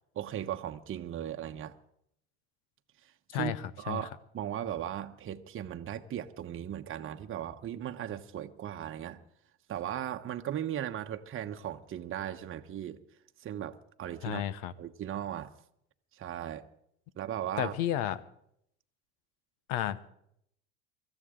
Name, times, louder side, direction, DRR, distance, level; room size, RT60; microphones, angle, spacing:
voice 1, 0.1-1.7 3.3-3.5 3.8-9.2 9.7-13.0 13.4-14.4 14.8-15.5 16.2-16.6 17.1-17.8, right 10 dB, 35° right, 1.1 m, -37 dB
voice 2, 14.2-14.7 17.6-18.2 19.7-20.1, left 12 dB, 65° left, 1.0 m, -32 dB
24.5 x 14.0 x 3.8 m
hypercardioid pair, 80°, 34 cm